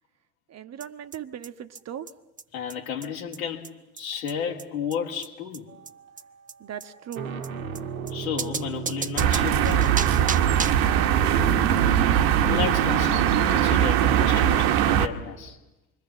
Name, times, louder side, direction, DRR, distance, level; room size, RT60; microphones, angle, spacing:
voice 1, 0.5-2.1 6.6-7.3 10.8-11.5, right 9 dB, 40° right, 1.5 m, -38 dB
sound 1, 0.8-0.9 1.1-1.2 1.4-1.5 1.8-1.9 2.1-2.2 2.4-2.5 2.7-2.8 3.0-3.1 3.3-3.4 3.6-3.7 4.0-4.1 4.3-4.4 4.6-4.7 4.9-5.0 5.2-5.3 5.5-5.6 5.9-6.0 6.2-6.3 6.5-6.6 6.8-6.9 7.1-7.2 7.4-7.5 7.8-7.9 8.1-8.2 8.4-10.9, right 5 dB, 20° right, 1.0 m, -33 dB
voice 2, 2.5-5.7 8.1-10.0 12.4-15.6, left 7 dB, 75° left, 3.1 m, -32 dB
sound 2, 5.7-6.1 6.9-15.5, right 5 dB, 85° right, 1.6 m, -36 dB
sound 3, 9.2-15.1, right 10 dB, 60° right, 1.5 m, -21 dB
27.0 x 23.0 x 7.4 m
hypercardioid pair, 70°, 41 cm